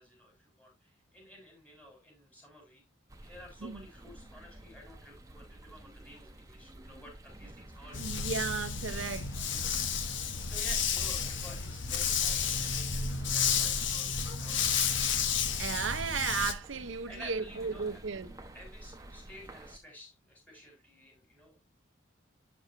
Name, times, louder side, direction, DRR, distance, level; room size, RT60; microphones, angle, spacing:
voice 1, 0.0-2.8 3.2-8.0 10.0-15.1 17.1-18.0 18.5-21.6, equal, 5° left, 3.9 m, -52 dB
sound 1, 3.1-19.8, right 1 dB, 15° right, 0.9 m, -51 dB
Dog, 7.9-16.5, left 6 dB, 70° left, 1.0 m, -31 dB
voice 2, 7.9-9.5 15.6-18.4, right 5 dB, 80° right, 0.8 m, -35 dB
8.5 x 7.4 x 2.6 m
head